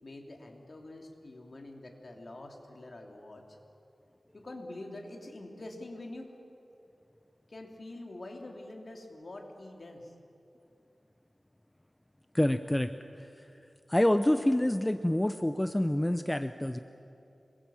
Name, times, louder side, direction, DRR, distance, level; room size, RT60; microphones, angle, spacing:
voice 1, 0.0-3.6 4.3-6.3 7.5-10.1, left 2 dB, 55° left, 2 dB, 3.2 m, -45 dB
voice 2, 12.3-12.9 13.9-16.8, left 1 dB, 15° left, 9 dB, 0.7 m, -27 dB
27.0 x 22.0 x 7.3 m, 2.8 s
wide cardioid pair, 95°, 0 cm